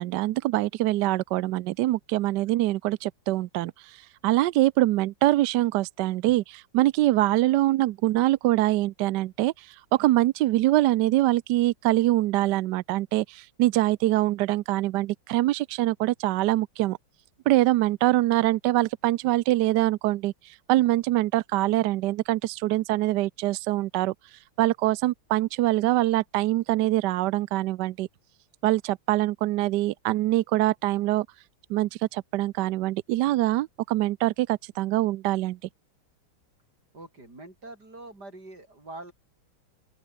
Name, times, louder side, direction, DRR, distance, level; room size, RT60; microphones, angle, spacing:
voice 1, 0.0-17.0 17.5-28.1 28.6-31.3 31.7-35.6, right 16 dB, 75° right, 1.0 m, -24 dB
voice 2, 36.9-39.1, right 2 dB, 50° right, 8.0 m, -44 dB
open air
omnidirectional pair, 2.2 m